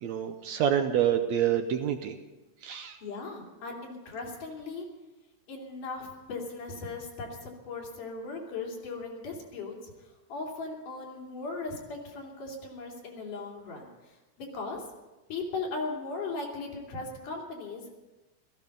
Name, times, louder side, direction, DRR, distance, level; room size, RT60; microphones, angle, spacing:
voice 1, 0.0-2.1 2.6-3.0, right 9 dB, 70° right, 7 dB, 1.8 m, -27 dB
voice 2, 3.0-4.9 5.5-9.9 10.3-14.9 15.3-18.0, left 3 dB, 75° left, -1 dB, 4.2 m, -38 dB
16.5 x 14.5 x 5.3 m, 1.1 s
omnidirectional pair, 3.7 m